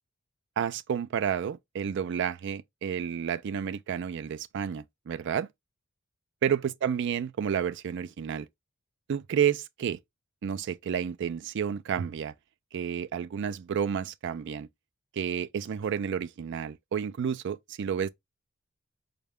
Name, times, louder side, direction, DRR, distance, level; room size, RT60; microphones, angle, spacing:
voice 1, 0.6-5.5 6.4-8.5 9.1-10.0 10.4-12.3 12.7-14.7 15.2-18.1, right 8 dB, 55° right, 0.3 m, -30 dB
3.9 x 2.2 x 3.4 m
head